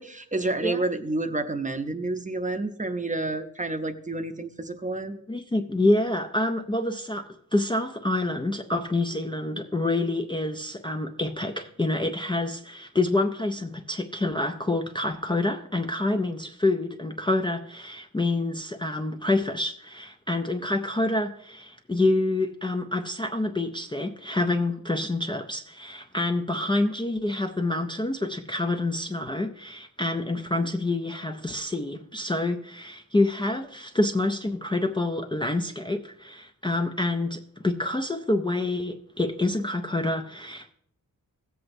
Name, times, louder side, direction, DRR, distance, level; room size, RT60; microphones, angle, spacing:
voice 1, 0.0-5.2, right 2 dB, 25° right, 0.7 m, -29 dB
voice 2, 5.3-40.7, left 2 dB, 15° left, 0.4 m, -27 dB
16.5 x 7.8 x 2.6 m
wide cardioid pair, 135°, 33 cm